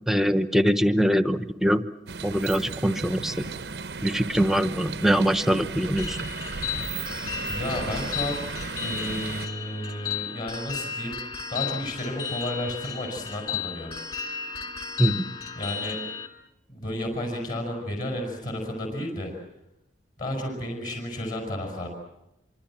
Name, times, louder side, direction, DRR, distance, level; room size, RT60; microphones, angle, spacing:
voice 1, 0.1-1.8 2.2-3.4 4.0-6.2 15.0-15.2, equal, ahead, 10 dB, 1.0 m, -23 dB
sound 1, 2.1-9.5, right 4 dB, 65° right, 0.8 m, -35 dB
sound 2, 6.0-16.3, left 7 dB, 30° left, 3.1 m, -34 dB
voice 2, 7.4-8.4 8.8-11.2 11.5-14.2 15.6-16.0 16.7-19.3 20.2-21.9, left 1 dB, 45° left, 1 dB, 5.6 m, -32 dB
26.0 x 25.0 x 7.5 m, 0.88 s
head